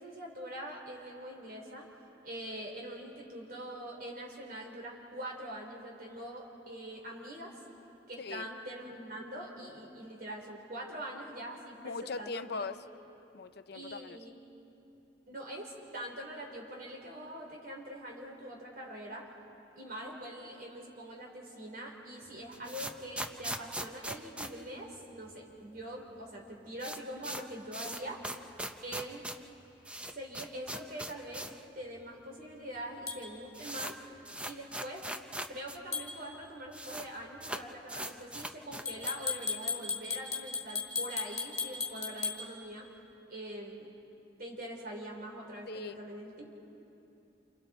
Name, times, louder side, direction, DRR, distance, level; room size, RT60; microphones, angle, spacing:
voice 1, 0.0-1.9 2.2-7.6 8.1-12.7 13.7-14.3 15.3-19.3 19.8-28.2 28.8-29.3 30.0-31.5 31.7-34.0 34.5-35.0 35.5-42.9 43.3-43.9 44.4-46.6, right 1 dB, 55° right, 0 dB, 4.0 m, -44 dB
voice 2, 11.8-12.7 13.3-14.2 45.7-46.0, left 4 dB, 60° left, 11 dB, 0.7 m, -39 dB
sound 1, 22.3-25.5 25.8-25.9 26.1-26.2 26.5-31.7 32.0-32.1 32.8-32.9 33.1-35.8 36.0-36.1 36.3-37.1 37.4-39.3, right 1 dB, 5° right, 0.7 m, -41 dB
sound 2, 33.1-33.2 35.9-36.1 38.9-42.4, left 5 dB, 20° left, 3.2 m, -35 dB
29.0 x 28.5 x 4.4 m, 2.9 s
head